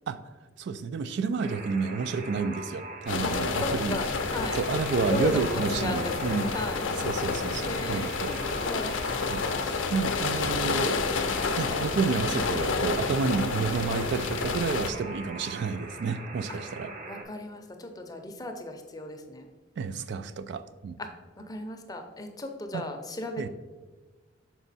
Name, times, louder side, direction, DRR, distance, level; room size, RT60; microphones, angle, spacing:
voice 1, 0.6-4.0 4.6-6.5 7.0-8.3 9.3-11.0 11.6-16.9 19.8-21.0 22.7-22.8 23.4-23.5, right 5 dB, 65° right, 12 dB, 0.3 m, -30 dB
Alarm, 1.4-17.2, right 2 dB, 40° right, 0.8 m, -42 dB
sound 1, 3.1-14.9, left 4 dB, 80° left, 0.5 m, -30 dB
voice 2, 3.2-4.6 5.1-6.8 7.6-9.0 13.0-13.2 16.5-16.6 17.0-19.5 21.0-23.5, left 2 dB, 20° left, 5 dB, 0.6 m, -36 dB
6.0 x 4.4 x 4.1 m, 1.3 s
head